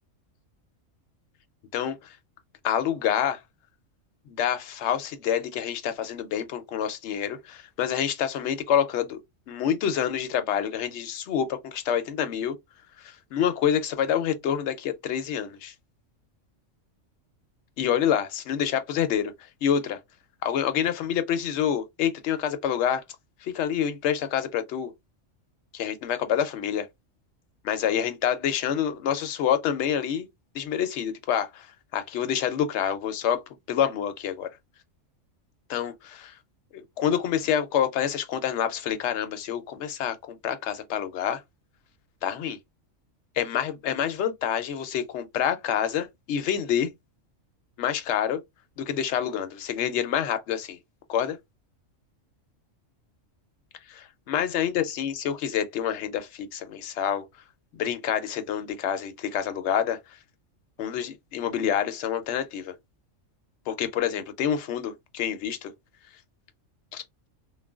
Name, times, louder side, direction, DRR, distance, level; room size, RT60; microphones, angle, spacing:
voice 1, 2.6-3.4 4.3-9.2 9.5-12.6 13.0-15.7 17.8-19.3 19.6-20.0 20.4-23.0 23.4-24.9 25.7-26.9 27.6-30.3 30.5-31.7 31.9-33.4 33.7-34.5 35.7-36.3 36.7-41.4 42.2-42.6 43.4-46.9 47.8-48.4 48.8-50.8 51.1-51.4 53.9-57.2 57.7-60.0 60.8-62.7 63.7-65.7 66.9-67.0, left 9 dB, 65° left, 0.8 m, -27 dB
3.1 x 2.1 x 2.3 m
omnidirectional pair, 1.3 m